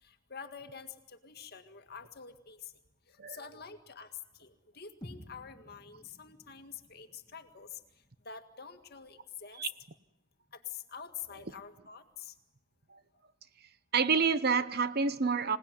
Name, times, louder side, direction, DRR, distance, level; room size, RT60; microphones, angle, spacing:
voice 1, 0.0-2.7 3.1-7.8 8.2-9.7 10.5-12.3, left 7 dB, 50° left, 1.9 m, -47 dB
sound 1, 5.0-9.0, equal, 20° left, 2.2 m, -54 dB
voice 2, 13.9-15.6, right 5 dB, 50° right, 1.0 m, -28 dB
26.0 x 18.0 x 9.8 m
head